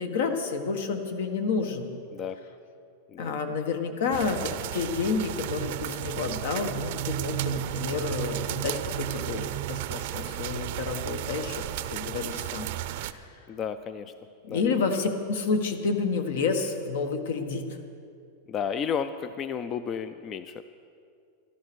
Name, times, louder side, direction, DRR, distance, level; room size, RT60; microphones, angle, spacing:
voice 1, 0.0-1.9 3.2-11.6 11.9-13.4 14.4-17.7, left 4 dB, 75° left, 7 dB, 1.5 m, -30 dB
sound 1, 4.1-13.1, right 14 dB, 55° right, 0.5 m, -33 dB
voice 2, 13.5-14.1 14.5-14.6 18.5-20.6, left 7 dB, 25° left, 12 dB, 0.4 m, -32 dB
13.0 x 12.5 x 6.2 m, 2.4 s
supercardioid pair, 165°, 0 cm